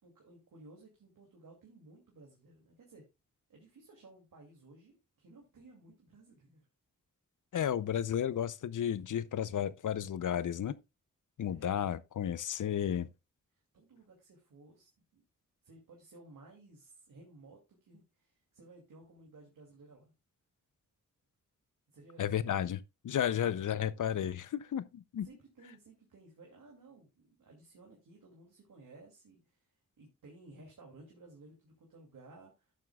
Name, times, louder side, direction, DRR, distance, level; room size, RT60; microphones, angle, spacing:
voice 1, 0.0-3.1 3.5-6.7 11.4-11.8 13.7-15.2 15.6-20.1 21.9-22.7 23.3-23.7 25.2-29.7 30.0-32.7, right 2 dB, 80° right, 2.5 m, -57 dB
voice 2, 7.5-10.8 11.4-13.1 22.2-22.8 23.0-25.3, left 9 dB, 70° left, 0.6 m, -33 dB
12.5 x 7.5 x 2.3 m
cardioid pair, 65°, 33 cm